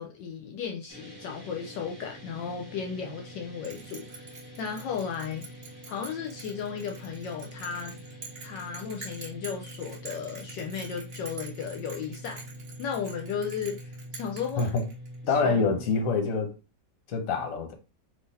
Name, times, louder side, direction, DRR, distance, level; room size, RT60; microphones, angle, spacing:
voice 1, 0.0-5.5 5.9-8.0 8.4-12.4 12.8-14.8 15.2-15.7, left 6 dB, 75° left, 1.2 m, -35 dB
sound 1, 0.9-16.0, right 1 dB, 15° right, 1.0 m, -45 dB
Bell, 3.6-15.3, right 4 dB, 40° right, 1.5 m, -46 dB
voice 2, 15.3-16.5 17.1-17.7, left 4 dB, 55° left, 1.2 m, -26 dB
3.7 x 3.1 x 4.1 m
omnidirectional pair, 2.1 m